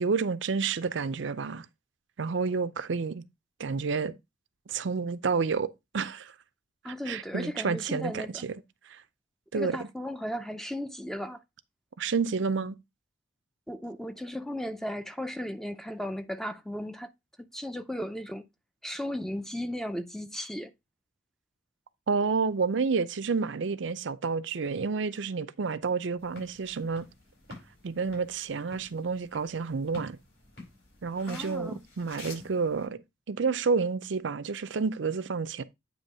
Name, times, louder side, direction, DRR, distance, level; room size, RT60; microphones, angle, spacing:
voice 1, 0.0-1.7 2.2-3.2 3.6-4.1 4.7-6.3 6.9-8.6 8.9-9.0 9.5-9.8 12.0-12.8 22.1-27.1 27.8-30.2 31.0-33.0 33.3-35.6, right 5 dB, 70° right, 0.5 m, -29 dB
voice 2, 6.8-8.4 9.5-11.4 13.7-17.1 17.5-18.5 18.8-20.7 31.3-31.8, equal, ahead, 0.5 m, -35 dB
sound 1, 26.2-32.8, left 2 dB, 55° left, 4.6 m, -49 dB
8.9 x 3.1 x 5.3 m
head